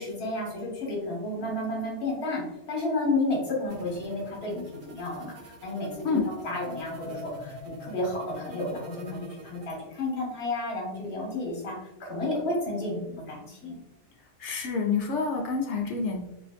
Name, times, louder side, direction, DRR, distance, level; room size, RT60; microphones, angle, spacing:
voice 1, 0.0-11.7 12.0-13.8, left 2 dB, 50° left, -2 dB, 1.2 m, -31 dB
sound 1, 3.7-9.7, equal, 70° right, 0.9 m, -44 dB
voice 2, 14.4-16.3, left 5 dB, 65° left, 1 dB, 0.8 m, -28 dB
3.3 x 2.7 x 2.3 m, 0.90 s
omnidirectional pair, 1.4 m